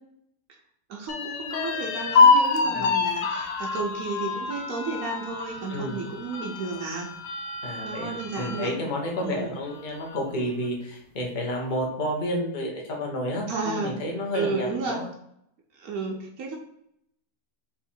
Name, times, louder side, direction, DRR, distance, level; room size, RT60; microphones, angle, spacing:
voice 1, 0.9-7.1 7.8-8.7 9.2-9.5 13.5-14.0 14.3-15.1 15.7-16.6, right 3 dB, 75° right, -1 dB, 1.2 m, -32 dB
sound 1, 1.1-8.7 9.2-9.3 9.7-10.3, left 4 dB, 65° left, 0.9 m, -26 dB
voice 2, 5.7-6.0 7.6-15.1, equal, 35° left, -2 dB, 1.1 m, -30 dB
3.7 x 3.0 x 4.3 m, 0.74 s
omnidirectional pair, 1.6 m